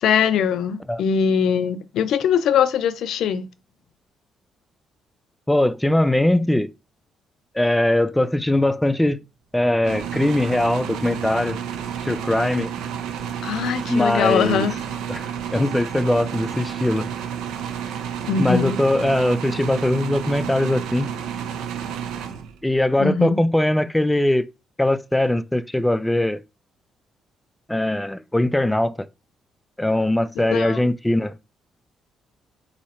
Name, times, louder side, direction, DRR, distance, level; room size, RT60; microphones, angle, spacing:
voice 1, 0.0-3.5 13.4-14.7 18.3-18.8 23.0-23.4 30.4-30.8, left 7 dB, 75° left, 0.5 m, -21 dB
voice 2, 5.5-6.7 7.5-9.2 9.5-11.6 12.0-12.7 13.9-14.7 15.1-17.1 18.4-21.1 22.6-24.5 24.8-26.4 27.7-28.9 29.8-31.4, left 1 dB, 10° left, 0.4 m, -21 dB
sound 1, 9.8-22.8, right 8 dB, 90° right, 0.6 m, -30 dB
4.1 x 2.7 x 4.2 m
cardioid pair, 90°, 0 cm